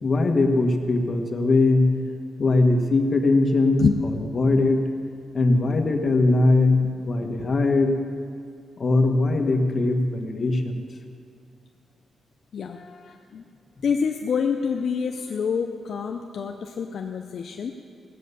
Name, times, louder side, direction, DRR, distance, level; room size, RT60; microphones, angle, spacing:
voice 1, 0.0-2.0 2.4-4.9 5.3-8.0 8.8-10.8, left 2 dB, 40° left, 3 dB, 1.6 m, -21 dB
voice 2, 12.5-13.4 13.8-17.7, left 6 dB, 60° left, 3 dB, 0.7 m, -27 dB
17.5 x 8.4 x 6.9 m, 2.3 s
cardioid pair, 120°, 0 cm